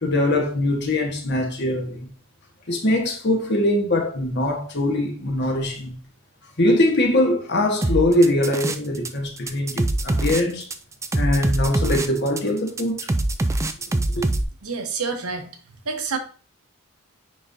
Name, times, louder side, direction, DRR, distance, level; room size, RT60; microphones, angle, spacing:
voice 1, 0.0-2.1 2.7-6.0 6.6-10.7 11.1-13.1 13.9-14.2, left 1 dB, 50° left, 1.3 m, -22 dB
sound 1, 7.8-9.1 9.4-14.4, right 2 dB, 15° right, 0.3 m, -23 dB
voice 2, 14.6-16.2, right 5 dB, 75° right, 1.2 m, -29 dB
9.8 x 3.8 x 2.7 m
head